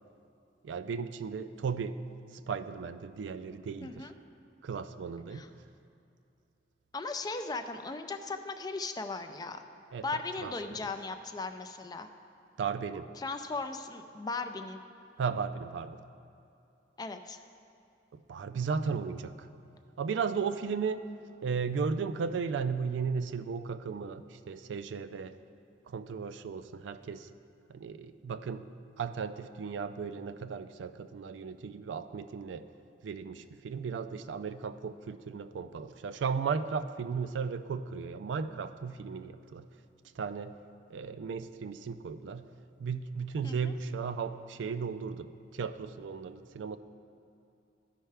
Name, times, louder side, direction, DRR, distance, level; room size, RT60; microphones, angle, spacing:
voice 1, 0.6-4.1 4.6-5.5 9.9-10.1 10.4-10.8 12.6-13.1 15.2-16.0 18.1-19.5 20.0-21.1 21.4-25.4 25.9-27.3 27.7-28.7 29.0-32.7 33.0-39.7 40.2-40.6 40.9-42.5 42.8-46.8, right 5 dB, 90° right, 12 dB, 0.3 m, -35 dB
voice 2, 3.8-4.1 5.3-5.5 6.9-9.6 10.0-12.1 13.2-14.8 17.0-17.4 43.4-43.7, left 3 dB, 20° left, 7 dB, 0.3 m, -37 dB
13.0 x 5.5 x 3.3 m, 2.7 s
head